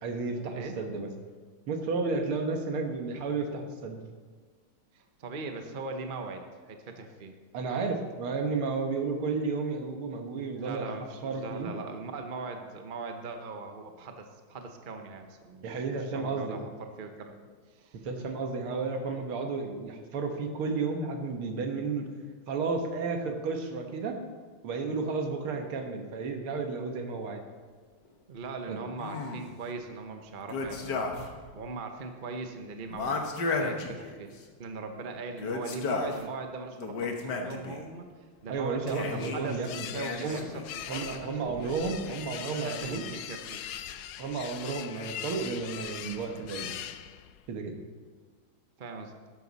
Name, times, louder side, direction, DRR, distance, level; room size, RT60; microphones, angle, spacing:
voice 1, 0.0-1.1 1.7-4.0 7.5-10.9 11.2-11.7 15.6-16.6 18.0-22.1 22.5-24.2 24.6-27.4 28.7-28.8 38.5-39.9 40.2-40.4 40.9-43.0 44.2-46.7 47.5-47.7, right 4 dB, 85° right, 4 dB, 2.2 m, -32 dB
voice 2, 4.9-7.3 10.6-18.0 28.3-31.0 31.5-33.2 33.5-34.3 34.6-38.1 38.4-41.6 42.1-42.2 42.5-43.6 48.8-49.1, right 3 dB, 55° right, 5 dB, 0.5 m, -40 dB
sound 1, 29.0-29.6 30.5-31.4 31.7-31.8 32.9-34.4 35.3-36.2 36.8-37.8 38.9-39.4 39.9-40.7, left 3 dB, 60° left, 1.6 m, -33 dB
sound 2, 38.6-47.5, left 10 dB, 75° left, 0.9 m, -41 dB
12.5 x 11.0 x 4.1 m, 1.5 s
omnidirectional pair, 2.3 m